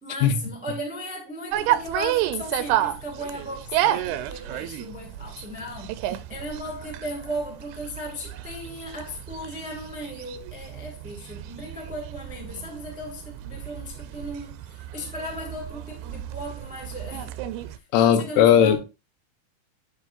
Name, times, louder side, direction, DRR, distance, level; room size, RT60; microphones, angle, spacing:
voice 1, 0.0-17.3 18.0-18.8, equal, 5° right, 1.0 m, -36 dB
sound 1, 1.5-17.8, right 13 dB, 85° right, 2.6 m, -31 dB
voice 2, 17.9-18.8, left 9 dB, 85° left, 3.0 m, -17 dB
11.0 x 6.1 x 2.6 m
omnidirectional pair, 4.5 m